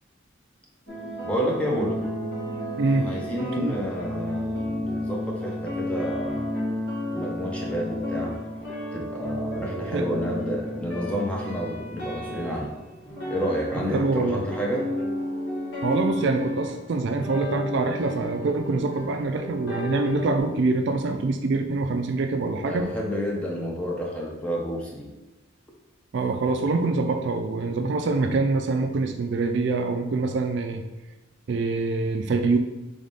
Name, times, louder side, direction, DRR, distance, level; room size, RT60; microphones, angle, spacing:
sound 1, 0.9-20.4, left 1 dB, 60° left, 1.4 m, -32 dB
voice 1, 1.2-2.0 3.0-6.5 7.1-8.4 8.9-12.7 13.3-14.8 22.7-25.1, equal, 5° left, -3 dB, 0.7 m, -30 dB
voice 2, 2.8-3.1 3.6-3.7 9.9-10.0 13.9-14.4 15.8-22.8 26.1-30.8 31.5-32.6, right 3 dB, 55° right, 5 dB, 0.3 m, -25 dB
3.6 x 3.5 x 4.0 m, 1.1 s
head